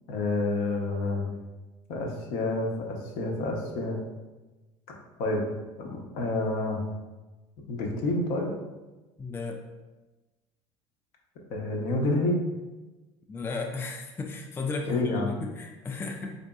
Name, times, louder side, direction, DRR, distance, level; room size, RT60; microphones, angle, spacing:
voice 1, 0.1-1.3 1.9-4.0 5.2-5.4 5.8-6.8 7.7-8.5 11.5-12.4 14.9-15.3, left 2 dB, 65° left, 0 dB, 0.7 m, -28 dB
voice 2, 9.2-9.6 13.3-16.4, left 3 dB, 15° left, 2 dB, 0.3 m, -34 dB
3.9 x 2.6 x 2.3 m, 1.2 s
hypercardioid pair, 75°, 15 cm